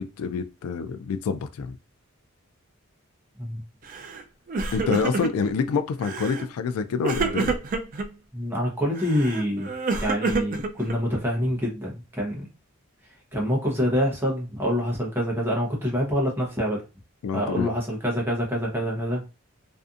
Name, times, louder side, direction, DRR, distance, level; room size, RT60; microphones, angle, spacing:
voice 1, 0.0-1.8 4.7-7.6 17.2-17.7, left 5 dB, 90° left, 0.3 m, -27 dB
Crying sobbing, 3.9-4.2 4.5-5.5 6.0-6.5 7.0-8.1 9.0-11.2, right 4 dB, 40° right, 0.3 m, -28 dB
voice 2, 8.3-9.7 10.0-12.4 13.3-16.8 17.3-19.2, equal, 10° right, 0.7 m, -26 dB
2.6 x 2.5 x 2.4 m
head